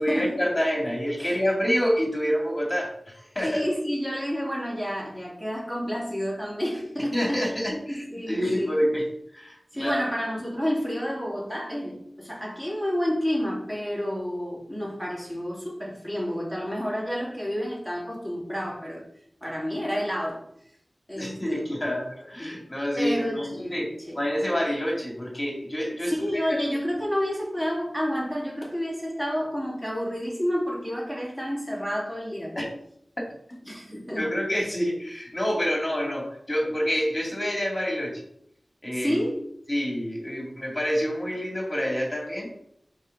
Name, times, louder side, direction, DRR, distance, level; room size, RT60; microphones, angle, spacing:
voice 1, 0.0-3.6 7.1-9.0 9.3-10.0 21.1-26.6 32.6-32.7 34.1-38.2 38.8-39.2 39.7-42.5, equal, 30° left, -2 dB, 2.6 m, -27 dB
voice 2, 3.4-8.7 9.7-19.0 19.4-20.4 21.1-21.6 22.4-22.6 23.0-24.2 26.1-32.5 33.7-34.3 38.9-39.4, equal, 5° right, -4 dB, 2.8 m, -30 dB
5.5 x 4.6 x 5.1 m, 0.72 s
wide cardioid pair, 60°, 0 cm